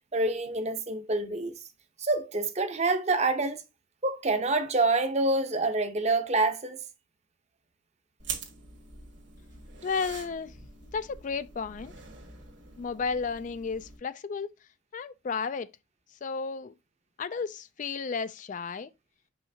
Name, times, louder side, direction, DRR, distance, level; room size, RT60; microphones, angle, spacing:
voice 1, 0.1-1.5 2.0-3.6 4.0-6.8, right 2 dB, 35° right, 0.8 m, -27 dB
sound 1, 8.2-14.0, right 6 dB, 65° right, 1.8 m, -44 dB
voice 2, 9.8-10.5 10.9-11.9 12.8-14.5 14.9-15.7 16.2-16.7 17.2-18.9, left 5 dB, 40° left, 0.3 m, -33 dB
6.7 x 5.5 x 2.7 m
head